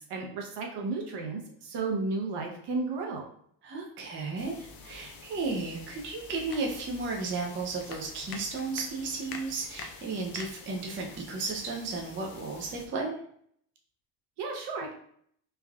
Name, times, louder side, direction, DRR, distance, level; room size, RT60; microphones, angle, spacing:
voice 1, 0.1-3.2 14.4-14.9, right 3 dB, 60° right, 1 dB, 0.8 m, -33 dB
voice 2, 3.6-13.2, right 3 dB, 25° right, -1 dB, 0.5 m, -34 dB
sound 1, 4.4-12.9, left 4 dB, 50° left, 0.6 m, -46 dB
3.3 x 2.3 x 2.3 m, 0.63 s
cardioid pair, 115°, 47 cm